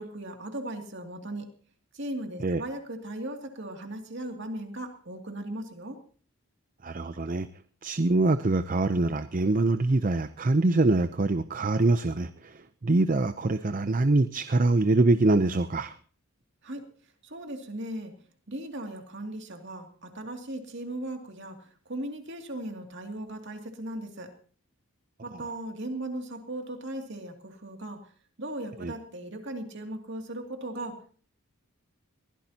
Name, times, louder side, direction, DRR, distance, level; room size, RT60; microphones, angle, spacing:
voice 1, 0.0-1.5 1.9-6.0 16.6-16.8 17.2-18.1 18.5-24.3 25.2-28.1 28.4-31.1, right 1 dB, 55° right, 4 dB, 2.5 m, -37 dB
voice 2, 6.8-7.5 7.8-16.0 28.8-28.9, right 2 dB, 35° right, 11 dB, 0.6 m, -24 dB
22.5 x 16.0 x 2.9 m, 0.43 s
head